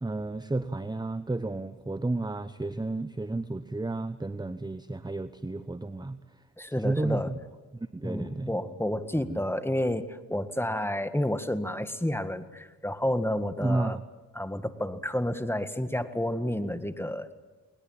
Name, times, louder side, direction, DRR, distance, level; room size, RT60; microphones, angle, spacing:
voice 1, 0.0-6.4 6.8-7.4 7.7-8.6 9.2-9.4 13.6-14.0, right 2 dB, 10° right, 13 dB, 0.9 m, -32 dB
voice 2, 6.6-7.3 8.0-14.0 14.4-17.3, left 1 dB, 5° left, 11 dB, 1.8 m, -30 dB
21.0 x 20.5 x 8.9 m, 1.2 s
supercardioid pair, 50°, 36 cm